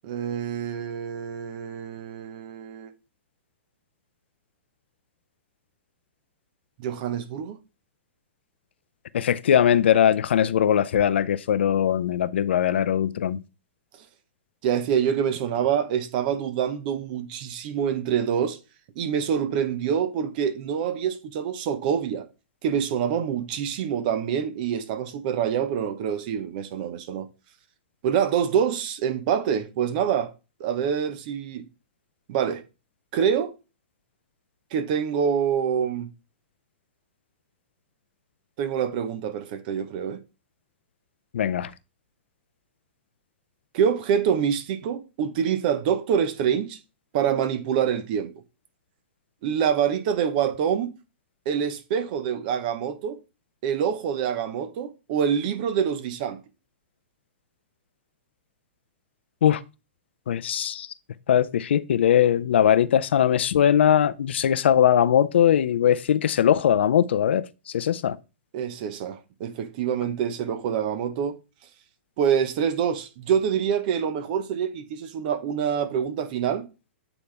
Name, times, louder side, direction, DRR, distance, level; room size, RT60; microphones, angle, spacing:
voice 1, 0.0-2.9 6.8-7.6 14.6-18.6 18.9-22.3 22.6-27.3 28.0-30.3 30.6-31.7 32.3-32.6 33.1-33.5 34.7-36.1 38.6-40.2 43.7-46.8 47.1-48.3 49.4-50.9 51.4-53.2 53.6-56.4 68.5-71.4 72.2-76.7, right 8 dB, 50° right, 1.0 m, -26 dB
voice 2, 9.1-13.4 41.3-41.7 59.4-59.6 60.3-60.9 61.3-67.4 67.7-68.2, left 9 dB, 70° left, 0.5 m, -20 dB
8.4 x 4.0 x 3.4 m
hypercardioid pair, 125°, 6 cm